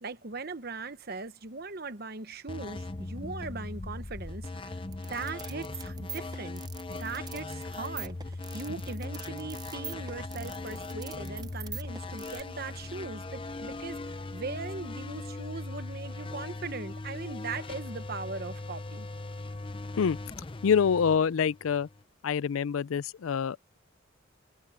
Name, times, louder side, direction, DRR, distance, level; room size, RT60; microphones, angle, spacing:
voice 1, 0.0-4.8 5.1-6.6 6.9-19.1, right 4 dB, 50° right, 1.0 m, -40 dB
sound 1, 2.5-22.0, left 2 dB, 25° left, 0.6 m, -39 dB
sound 2, 4.9-12.4, right 6 dB, 20° right, 0.7 m, -43 dB
voice 2, 20.6-21.9 22.2-23.8, left 7 dB, 85° left, 0.4 m, -26 dB
head